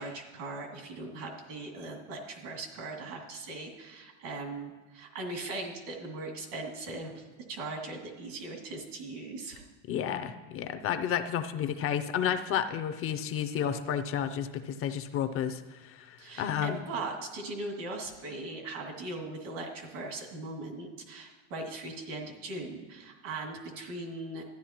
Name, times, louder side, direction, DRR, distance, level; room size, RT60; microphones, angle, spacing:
voice 1, 0.0-9.7 16.2-24.4, right 2 dB, 80° right, 0 dB, 2.4 m, -39 dB
voice 2, 9.9-16.8, left 9 dB, 35° left, 9 dB, 0.4 m, -31 dB
12.5 x 9.9 x 2.9 m, 1.2 s
supercardioid pair, 125°, 38 cm